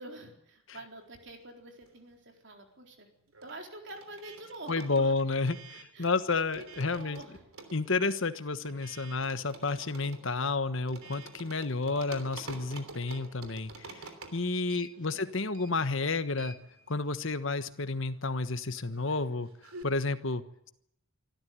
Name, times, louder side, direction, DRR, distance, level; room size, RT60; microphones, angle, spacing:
voice 1, 0.0-3.1 3.4-5.1 5.7-6.2 6.5-7.4 14.7-15.2, right 1 dB, 55° right, 3 dB, 4.0 m, -47 dB
sound 1, 1.0-2.3 2.5-19.8, right 3 dB, 75° right, 3.2 m, -50 dB
voice 2, 4.7-7.2 7.7-16.6 16.9-19.5 19.8-20.7, left 3 dB, 60° left, 11 dB, 1.3 m, -31 dB
25.5 x 13.5 x 9.6 m, 0.77 s
head